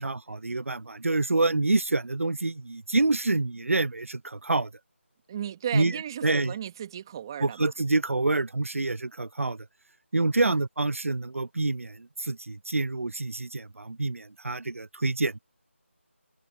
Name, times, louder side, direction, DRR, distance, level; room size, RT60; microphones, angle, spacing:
voice 1, 0.0-4.7 5.7-6.6 7.4-9.6 10.1-15.4, right 2 dB, 90° right, 0.5 m, -27 dB
voice 2, 5.3-7.7 10.4-10.6, right 10 dB, 20° right, 2.0 m, -35 dB
figure-of-eight pair, 165°, 7 cm